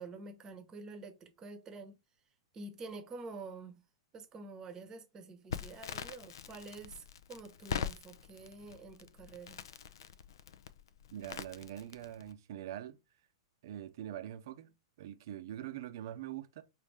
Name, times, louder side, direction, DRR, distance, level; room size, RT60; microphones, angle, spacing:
voice 1, 0.0-1.9 2.5-3.8 4.1-9.6, right 3 dB, 25° right, 0.9 m, -48 dB
Crackle, 5.5-12.3, left 8 dB, 65° left, 0.4 m, -43 dB
voice 2, 11.1-13.0 13.6-16.6, right 11 dB, 55° right, 0.6 m, -44 dB
5.0 x 2.7 x 3.3 m
figure-of-eight pair, 105°, 2 cm